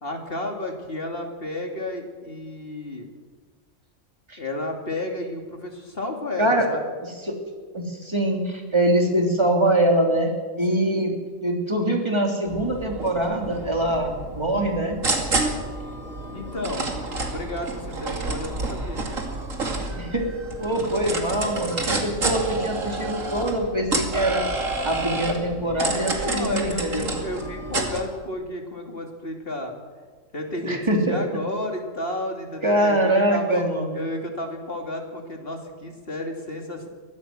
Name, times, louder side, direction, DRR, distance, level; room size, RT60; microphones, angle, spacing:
voice 1, 0.0-3.1 4.4-6.8 10.7-11.0 16.3-19.0 26.2-29.8 30.3-30.8 31.1-33.7 33.9-36.9, left 1 dB, 45° left, 3 dB, 3.0 m, -32 dB
voice 2, 7.0-7.3 7.7-10.3 10.6-11.1 11.4-15.0 19.9-24.4 24.8-27.1 30.6-31.2 32.6-34.0, right 1 dB, 20° right, 2 dB, 3.2 m, -23 dB
sound 1, 12.5-28.0, right 2 dB, 85° right, 3.0 m, -29 dB
22.5 x 15.0 x 7.7 m, 1.5 s
omnidirectional pair, 1.3 m